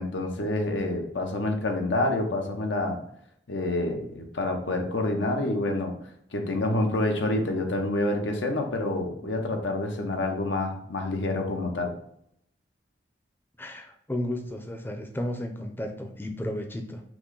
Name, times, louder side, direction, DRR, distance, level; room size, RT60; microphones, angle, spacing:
voice 1, 0.0-3.0 3.5-5.9 6.3-11.9, left 2 dB, 85° left, 3 dB, 0.8 m, -27 dB
voice 2, 13.6-17.0, left 1 dB, 10° left, 4 dB, 0.5 m, -33 dB
6.0 x 2.1 x 3.8 m, 0.70 s
head